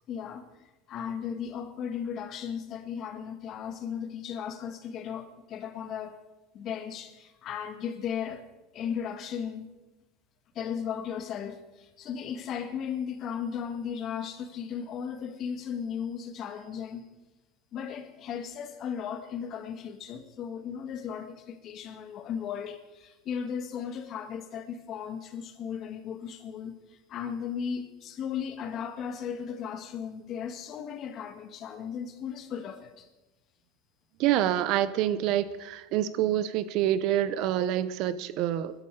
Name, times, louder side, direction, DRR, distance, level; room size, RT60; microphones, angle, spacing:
voice 1, 0.1-0.4 0.9-6.2 6.5-8.5 8.7-9.7 10.6-17.0 17.7-26.7 27.1-33.1, left 7 dB, 45° left, 1.8 m, -36 dB
voice 2, 34.2-38.7, right 12 dB, 60° right, 0.9 m, -27 dB
20.5 x 12.5 x 4.8 m
supercardioid pair, 120°, 0 cm